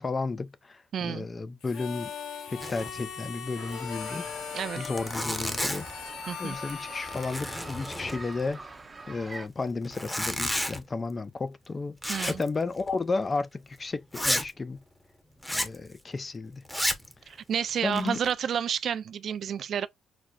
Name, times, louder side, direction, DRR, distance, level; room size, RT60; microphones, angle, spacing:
voice 1, 0.0-2.1 2.5-4.2 4.8-5.9 6.4-8.6 9.1-12.0 12.3-14.8 15.5-16.6 17.8-18.2, left 3 dB, 30° left, 0.5 m, -33 dB
voice 2, 0.9-1.3 4.5-4.9 6.3-6.6 12.1-12.4 17.3-19.9, right 8 dB, 60° right, 0.4 m, -30 dB
Harmonica, 1.6-8.5, left 7 dB, 80° left, 1.0 m, -40 dB
Zipper (clothing), 2.6-3.0 3.2-3.3 3.7-3.8 4.4-4.5 4.8-6.0 6.5-6.8 7.1-8.5 9.8-10.8 12.0-12.5 12.8-12.9 13.4-13.5 14.1-14.5 15.4-15.8 16.6-17.1 17.7-18.3, equal, 5° left, 1.0 m, -31 dB
sound 1, 3.6-9.5, right 3 dB, 25° right, 0.8 m, -44 dB
5.9 x 2.0 x 2.4 m
cardioid pair, 90°, 0 cm